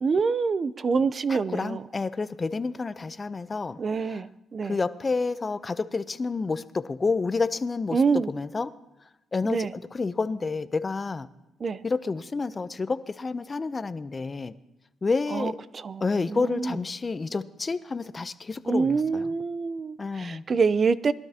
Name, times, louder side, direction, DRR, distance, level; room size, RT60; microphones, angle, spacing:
voice 1, 0.0-1.8 3.8-4.3 4.5-4.8 7.9-8.3 9.4-9.7 11.6-11.8 15.3-15.5 15.8-16.0 16.3-16.7 18.7-21.1, right 5 dB, 40° right, 17 dB, 0.5 m, -25 dB
voice 2, 1.3-4.2 4.6-8.7 9.3-11.3 11.8-14.6 15.0-15.6 16.0-19.3 20.0-20.4, left 4 dB, 30° left, 13 dB, 0.6 m, -29 dB
21.0 x 12.5 x 2.9 m, 0.97 s
cardioid pair, 90°, 0 cm